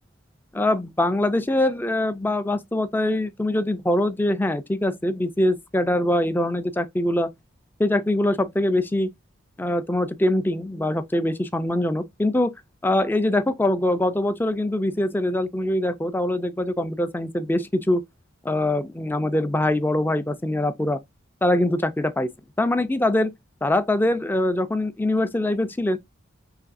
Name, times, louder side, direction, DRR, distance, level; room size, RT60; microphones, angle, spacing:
voice 1, 0.5-7.3 7.8-9.1 9.6-12.5 12.8-18.0 18.4-21.0 21.4-22.3 22.6-23.3 23.6-26.0, left 1 dB, 10° left, 0.4 m, -23 dB
5.8 x 3.2 x 2.5 m
head